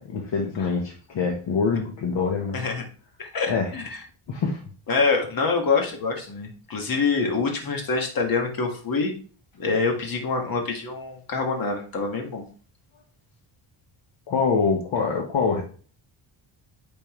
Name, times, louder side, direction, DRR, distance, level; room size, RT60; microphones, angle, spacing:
voice 1, 0.0-2.6 3.5-3.7 4.3-4.6 14.3-15.6, left 5 dB, 60° left, 0 dB, 1.3 m, -25 dB
voice 2, 3.2-3.8 4.9-9.1 9.6-12.4, left 4 dB, 45° left, 2 dB, 1.9 m, -25 dB
8.7 x 4.4 x 3.2 m, 0.40 s
cardioid pair, 150°, 49 cm